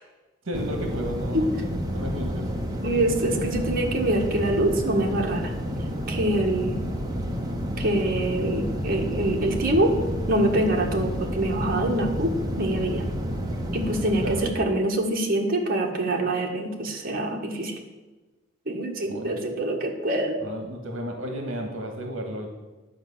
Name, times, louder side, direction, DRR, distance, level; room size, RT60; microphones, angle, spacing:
voice 1, 0.4-1.4 1.9-2.5 14.2-14.4 19.1-19.3 20.4-22.5, equal, 70° right, 3 dB, 1.5 m, -32 dB
sound 1, 0.5-14.5, equal, 20° right, 1.1 m, -30 dB
voice 2, 2.8-5.5 6.1-6.8 7.8-9.9 10.3-13.0 13.7-17.8 18.7-20.4, right 1 dB, 45° right, 0 dB, 1.6 m, -25 dB
10.5 x 5.4 x 8.4 m, 1.2 s
head